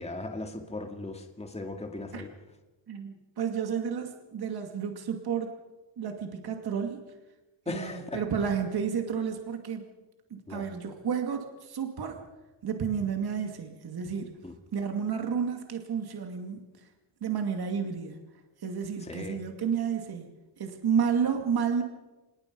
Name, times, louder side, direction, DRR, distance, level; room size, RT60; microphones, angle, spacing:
voice 1, 0.0-2.3 7.7-8.2 10.5-10.6 14.4-14.5 19.1-19.4, left 2 dB, 15° left, 4 dB, 2.2 m, -37 dB
voice 2, 2.9-5.6 6.0-7.0 7.7-9.9 10.3-12.2 12.6-14.3 14.7-16.6 17.2-18.2 18.6-21.8, right 7 dB, 55° right, 4 dB, 2.4 m, -31 dB
26.0 x 21.0 x 5.4 m, 1.1 s
cardioid pair, 130°, 45 cm